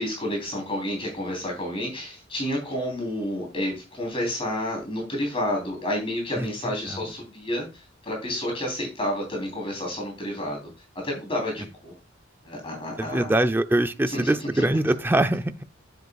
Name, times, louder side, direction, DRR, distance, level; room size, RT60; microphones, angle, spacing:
voice 1, 0.0-10.7 11.0-11.9 12.4-13.3 14.1-14.6, left 1 dB, 30° left, 3.4 m, -30 dB
voice 2, 13.0-15.6, right 1 dB, 10° right, 0.5 m, -23 dB
9.4 x 7.9 x 2.3 m
head